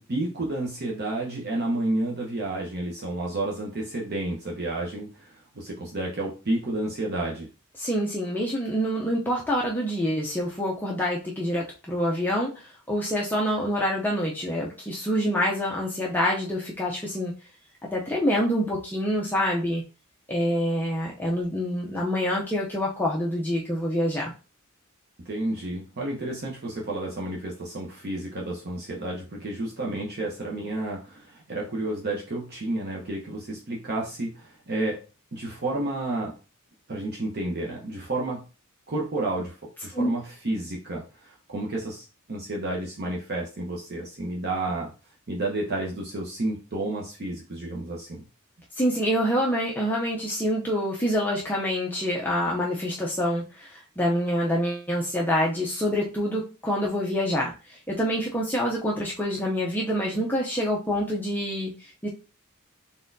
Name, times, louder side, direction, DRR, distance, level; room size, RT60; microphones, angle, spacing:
voice 1, 0.0-7.5 25.2-35.0 35.3-36.3 36.9-38.4 38.9-39.6 39.8-44.9 45.3-48.2, right 2 dB, 50° right, -2 dB, 0.8 m, -31 dB
voice 2, 7.8-17.3 17.8-19.8 20.3-24.3 39.9-40.1 48.8-62.1, equal, 10° left, -3 dB, 0.6 m, -26 dB
4.0 x 3.6 x 2.6 m, 0.34 s
head